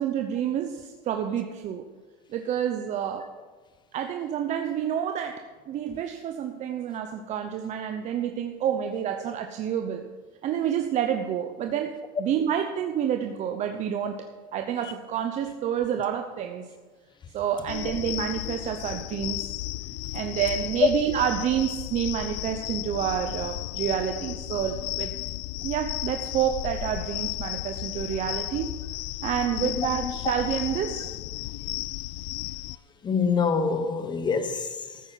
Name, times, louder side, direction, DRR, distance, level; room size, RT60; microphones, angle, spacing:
voice 1, 0.0-1.8 2.3-3.3 3.9-10.0 10.4-14.2 14.5-16.7 17.3-19.6 20.1-25.1 25.6-28.7 29.2-31.1, right 9 dB, 35° right, 0.8 m, -29 dB
sound 1, 17.7-32.8, left 19 dB, 55° left, 0.4 m, -34 dB
voice 2, 29.6-30.1 33.0-35.0, left 5 dB, 20° left, 1.2 m, -25 dB
14.0 x 8.8 x 5.8 m
supercardioid pair, 140°, 20 cm